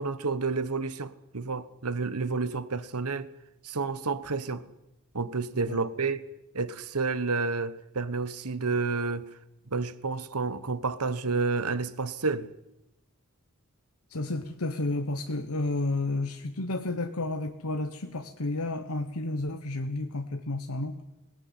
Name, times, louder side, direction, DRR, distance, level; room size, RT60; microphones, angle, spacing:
voice 1, 0.0-3.3 3.6-4.7 5.1-6.2 6.5-9.3 9.7-12.5, right 4 dB, 85° right, 1.2 m, -30 dB
voice 2, 14.1-21.0, left 2 dB, 70° left, 1.2 m, -31 dB
19.5 x 18.5 x 9.4 m
head